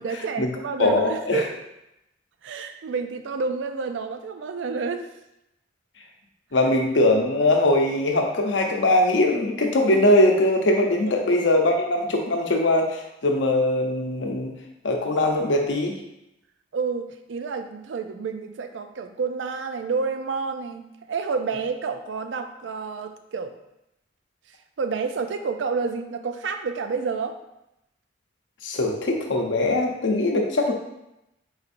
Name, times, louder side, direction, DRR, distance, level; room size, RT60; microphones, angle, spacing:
voice 1, 0.0-1.6 2.4-5.1 11.1-11.2 16.7-23.6 24.8-27.4, right 5 dB, 80° right, 8 dB, 0.4 m, -29 dB
voice 2, 0.8-1.4 6.5-14.5 14.8-16.0 28.6-30.7, left 1 dB, 80° left, 2 dB, 0.7 m, -21 dB
4.2 x 4.1 x 2.5 m, 0.87 s
head